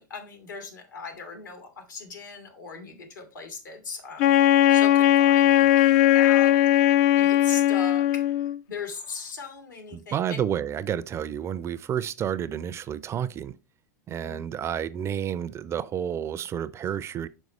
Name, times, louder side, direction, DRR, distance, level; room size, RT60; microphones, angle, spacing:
voice 1, 0.0-4.4 4.7-8.0 8.7-10.4 14.2-14.4, left 4 dB, 85° left, 1.9 m, -39 dB
Wind instrument woodwind instrument, 4.2-8.6, left 13 dB, 55° left, 0.3 m, -19 dB
voice 2, 9.9-13.6 14.1-17.3, right 9 dB, 25° right, 0.4 m, -30 dB
5.4 x 4.6 x 4.0 m
hypercardioid pair, 95°, 10 cm